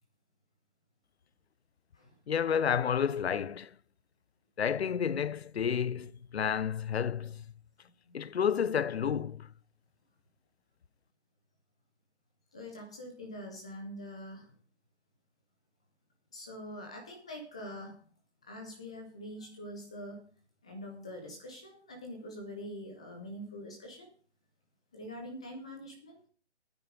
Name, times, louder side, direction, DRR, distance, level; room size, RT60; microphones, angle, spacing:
voice 1, 2.3-3.7 4.6-7.4 8.1-9.5, left 7 dB, 65° left, 0.7 m, -30 dB
voice 2, 12.5-14.5 16.3-18.0 18.4-20.2 20.6-24.1 24.9-26.3, equal, 5° left, 0.5 m, -44 dB
9.3 x 9.1 x 5.9 m
figure-of-eight pair, 150°, 35 cm